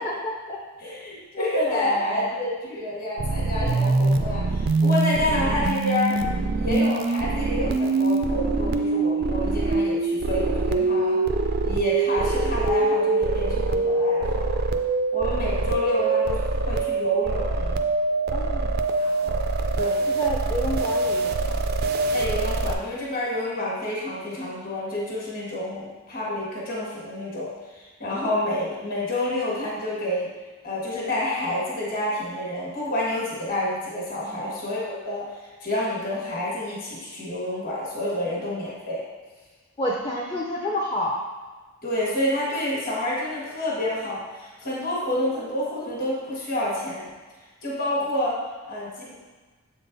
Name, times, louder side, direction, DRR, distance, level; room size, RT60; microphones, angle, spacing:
voice 1, 0.0-0.6 1.3-2.3 6.6-6.8 18.3-18.7 20.1-21.7 34.2-34.4 38.3-38.4 39.8-41.3, left 1 dB, 20° left, -3 dB, 0.6 m, -30 dB
voice 2, 0.8-6.2 6.6-11.2 11.6-14.5 15.1-16.4 16.7-17.8 19.0-19.4 19.7-20.0 22.1-27.5 27.7-30.3 30.6-35.3 35.6-39.0 41.8-47.1 47.6-48.4 48.7-49.1, left 1 dB, 40° left, -5 dB, 1.5 m, -28 dB
sound 1, 3.2-22.7, right 3 dB, 45° right, 0.4 m, -24 dB
7.4 x 3.8 x 3.9 m, 1.3 s
head